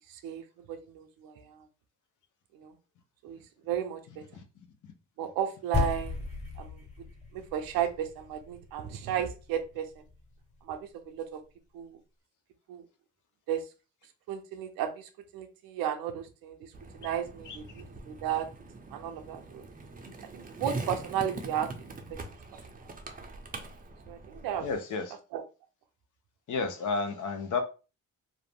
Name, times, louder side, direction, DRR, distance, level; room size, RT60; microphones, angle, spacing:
voice 1, 0.1-1.7 2.5-2.8 3.2-3.4 3.6-4.2 5.2-6.2 6.6-6.8 7.3-10.0 10.6-11.4 11.7-12.0 12.7-12.9 13.5-13.6 14.3-18.5 18.9-19.6 20.3-22.2 24.1-24.7 25.3-25.4, right 9 dB, 85° right, 0.6 m, -34 dB
sound 1, 5.7-10.3, left 4 dB, 20° left, 1.4 m, -36 dB
Skateboard, 16.7-24.7, right 3 dB, 25° right, 0.5 m, -43 dB
voice 2, 24.6-25.2 26.5-27.6, left 4 dB, 60° left, 0.7 m, -31 dB
2.5 x 2.0 x 3.4 m
supercardioid pair, 70°, 35 cm